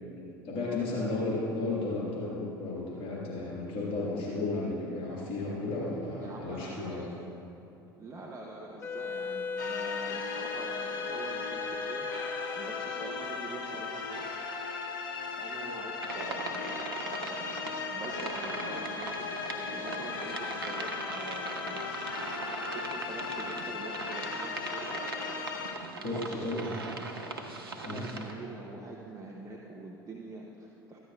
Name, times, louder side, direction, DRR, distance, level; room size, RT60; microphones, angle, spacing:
voice 1, 0.2-7.1 26.0-26.7 27.8-28.1, left 2 dB, 50° left, -5 dB, 1.8 m, -33 dB
voice 2, 6.2-7.1 8.0-12.1 12.6-14.4 15.3-16.7 17.0-17.4 17.9-22.0 22.7-25.0 26.1-27.0 27.8-31.0, right 2 dB, 25° right, -2 dB, 1.0 m, -45 dB
Wind instrument woodwind instrument, 8.8-13.4, left 4 dB, 15° left, 0.3 m, -38 dB
sound 1, 9.6-25.7, left 4 dB, 75° left, 0.8 m, -37 dB
sound 2, 16.0-28.3, right 3 dB, 85° right, 0.7 m, -40 dB
14.0 x 9.7 x 2.4 m, 2.7 s
figure-of-eight pair, 70°, 12 cm